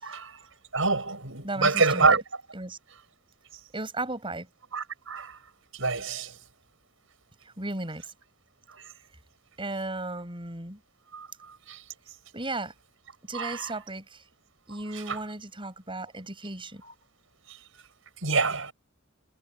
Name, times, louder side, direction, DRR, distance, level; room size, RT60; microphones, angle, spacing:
voice 1, 0.0-0.4 0.7-2.2 4.7-5.4 5.7-6.3 11.1-11.3 11.7-11.8 13.3-13.7 14.7-15.2 16.8-16.9 18.2-18.7, right 4 dB, 70° right, 6.6 m, -26 dB
voice 2, 1.4-2.2 2.5-2.8 3.7-4.5 7.6-8.1 9.6-10.8 12.3-12.7 13.3-14.2 14.7-16.8, right 2 dB, 25° right, 7.1 m, -35 dB
head